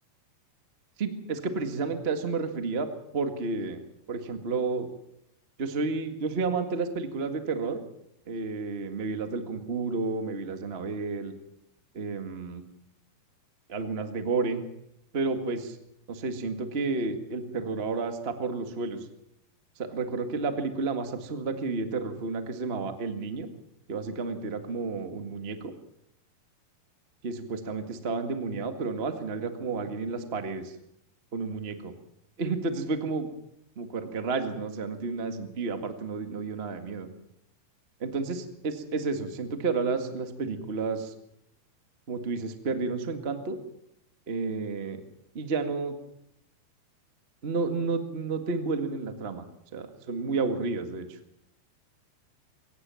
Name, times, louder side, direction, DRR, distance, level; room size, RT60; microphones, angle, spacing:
voice 1, 1.0-2.9 3.1-3.8 4.1-4.9 5.6-7.8 8.3-11.3 11.9-12.6 13.7-14.6 15.1-15.8 16.1-19.0 19.8-23.5 23.9-25.7 27.2-30.7 31.3-31.9 32.4-33.3 33.7-37.1 38.0-41.1 42.1-43.6 44.3-45.0 45.3-46.0 47.4-49.4 49.7-51.2, right 4 dB, 60° right, 7 dB, 0.6 m, -31 dB
23.0 x 18.5 x 7.1 m, 0.76 s
omnidirectional pair, 4.6 m